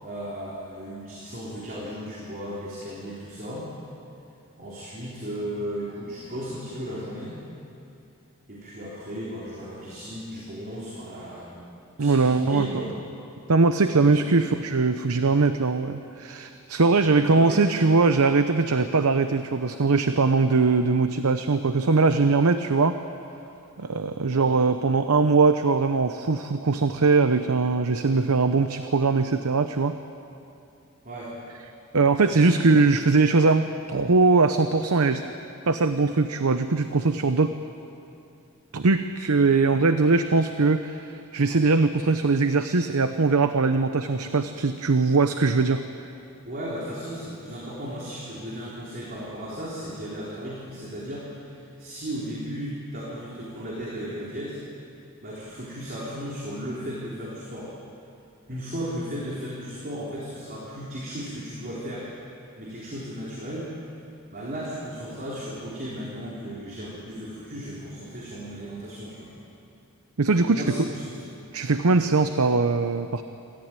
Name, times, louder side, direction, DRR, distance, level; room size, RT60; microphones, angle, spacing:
voice 1, 0.0-3.7 4.6-7.4 8.5-11.6 12.0-12.9 14.1-14.3 17.3-17.6 24.3-24.5 31.0-31.4 32.3-32.7 46.4-54.6 55.2-57.7 58.5-62.1 62.6-63.7 64.3-69.3 70.5-71.3 71.9-72.0, equal, 45° right, -5 dB, 3.8 m, -35 dB
voice 2, 12.0-12.8 13.5-23.0 23.8-30.0 31.9-35.2 35.7-37.5 38.7-45.8 70.2-70.8 71.5-73.2, right 3 dB, 85° right, 9 dB, 0.8 m, -21 dB
27.0 x 14.5 x 9.0 m, 2.7 s
head